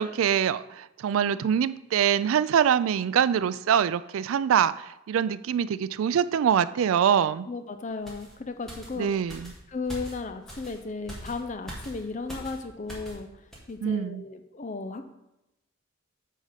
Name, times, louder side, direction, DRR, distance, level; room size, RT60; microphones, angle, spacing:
voice 1, 0.0-7.5 9.0-9.5 13.8-14.2, right 8 dB, 75° right, 16 dB, 0.3 m, -24 dB
voice 2, 7.5-9.1 9.7-13.3 13.7-15.1, left 3 dB, 35° left, 8 dB, 0.5 m, -35 dB
sound 1, 8.1-13.2 13.5-13.7, equal, ahead, 1.6 m, -43 dB
8.4 x 3.7 x 5.6 m, 0.90 s
head